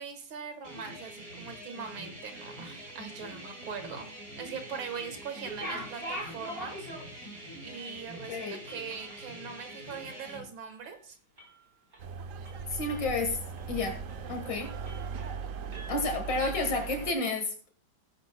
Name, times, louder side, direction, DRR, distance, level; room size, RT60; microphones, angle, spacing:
voice 1, 0.0-4.1 4.4-11.2, right 6 dB, 85° right, 7 dB, 2.4 m, -41 dB
sound 1, 0.6-10.4, right 1 dB, 45° right, 5.0 m, -45 dB
sound 2, 5.3-7.4 7.7-7.8 8.2-10.4 10.7-11.0 11.4-12.0 12.5-13.2 13.6-13.7 14.1-14.3 14.6-15.4 15.7-16.9, equal, 30° right, 3.3 m, -44 dB
voice 2, 8.3-8.6 12.7-13.4 13.7-14.0 14.3-14.7 15.9-17.7, left 3 dB, 65° left, 4 dB, 2.3 m, -31 dB
sound 3, 12.0-17.1, right 5 dB, 60° right, 0.8 m, -39 dB
16.5 x 10.0 x 2.2 m, 0.39 s
omnidirectional pair, 2.1 m